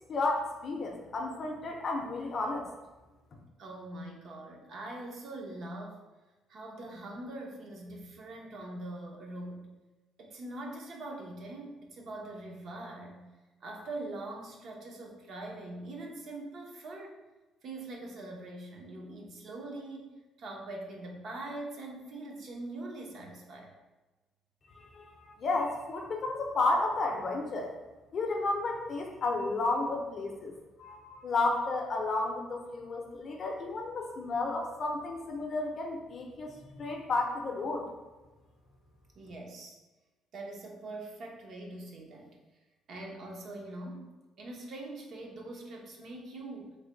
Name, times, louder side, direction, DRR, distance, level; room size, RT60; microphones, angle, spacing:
voice 1, 0.1-2.6 24.8-27.7 28.1-30.5 30.8-37.9, left 3 dB, 40° left, 2 dB, 0.5 m, -32 dB
voice 2, 3.6-6.0 6.5-9.7 10.2-13.2 13.6-17.2 17.6-20.1 20.4-23.7 39.1-39.8 40.3-42.4 42.9-46.8, right 2 dB, 50° right, 0 dB, 0.6 m, -43 dB
3.2 x 2.1 x 3.8 m, 1.2 s
cardioid pair, 140°, 0 cm